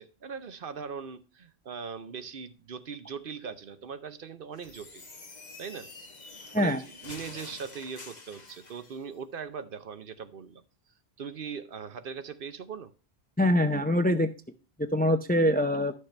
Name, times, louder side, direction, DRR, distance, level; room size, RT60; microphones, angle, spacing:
voice 1, 0.0-5.1 5.6-5.9 6.5-10.6 11.2-12.9, right 6 dB, 60° right, 11 dB, 0.9 m, -40 dB
sound 1, 4.5-9.0, left 3 dB, 45° left, 1.3 m, -47 dB
voice 2, 13.4-14.3 14.8-15.9, left 1 dB, 10° left, 9 dB, 0.4 m, -24 dB
11.5 x 6.5 x 3.2 m, 0.33 s
omnidirectional pair, 1.1 m